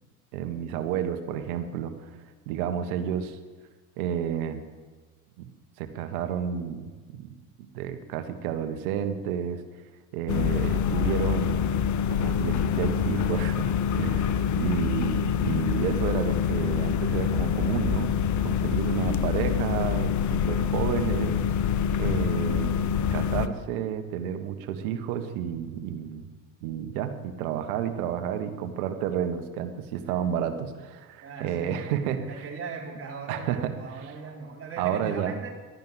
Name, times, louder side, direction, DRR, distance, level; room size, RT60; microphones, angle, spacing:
voice 1, 0.3-2.1 2.5-3.4 4.0-4.6 5.4-5.5 5.8-9.6 10.1-11.6 12.1-18.1 18.4-21.7 22.0-26.2 26.6-32.4 33.3-34.1 34.8-35.3, right 9 dB, 75° right, 9 dB, 1.6 m, -31 dB
sound 1, 10.3-23.5, left 8 dB, 40° left, 0.9 m, -26 dB
voice 2, 18.9-19.3 30.1-30.2 31.2-35.5, right 4 dB, 30° right, -2 dB, 3.9 m, -39 dB
12.5 x 10.5 x 8.1 m, 1.3 s
hypercardioid pair, 85°, 43 cm